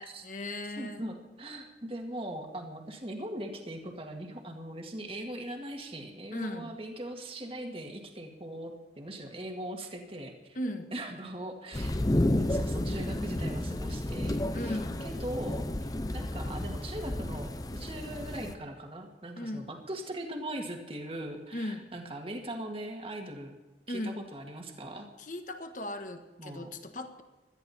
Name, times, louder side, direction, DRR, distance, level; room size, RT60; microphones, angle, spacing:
voice 1, 0.0-1.1 6.3-6.8 10.5-10.9 14.5-15.1 19.4-19.7 21.5-21.8 23.9-24.2 25.2-27.2, left 1 dB, 45° left, 7 dB, 1.5 m, -37 dB
voice 2, 0.8-10.6 10.9-12.0 12.3-23.5 23.9-25.1 26.4-26.7, right 1 dB, 30° right, 3 dB, 2.0 m, -40 dB
sound 1, 11.7-18.5, left 1 dB, 20° left, 0.7 m, -31 dB
17.5 x 13.5 x 4.3 m, 1.2 s
head